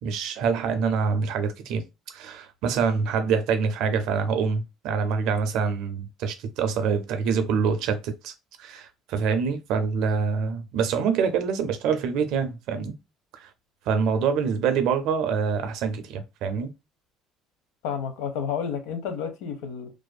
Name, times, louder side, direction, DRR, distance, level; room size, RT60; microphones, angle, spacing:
voice 1, 0.0-8.3 8.6-13.0 13.4-13.5 13.9-16.7, right 6 dB, 70° right, 0.4 m, -25 dB
voice 2, 17.8-19.9, left 7 dB, 85° left, 0.6 m, -30 dB
2.5 x 2.4 x 2.2 m
cardioid pair, 110°, 0 cm